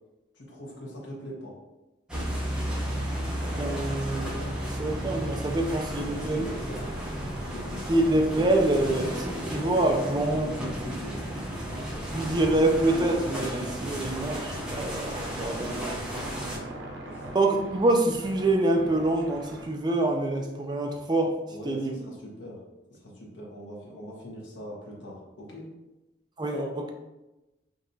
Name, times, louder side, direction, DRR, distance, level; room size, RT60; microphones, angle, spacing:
voice 1, 0.3-1.5 6.0-7.2 7.5-8.0 10.3-11.2 15.5-15.8 16.5-16.6 17.0-17.4 21.5-22.6 22.9-25.7, equal, 85° left, -4 dB, 1.3 m, -42 dB
sound 1, 2.1-16.6, equal, 5° right, 0.8 m, -33 dB
voice 2, 3.6-6.5 7.9-10.7 12.1-15.8 17.3-21.4 21.6-22.0 26.4-26.9, right 2 dB, 25° right, 3 dB, 0.4 m, -26 dB
sound 2, 3.6-19.7, right 1 dB, 90° right, 0.8 m, -45 dB
5.2 x 2.9 x 2.7 m, 1.0 s
head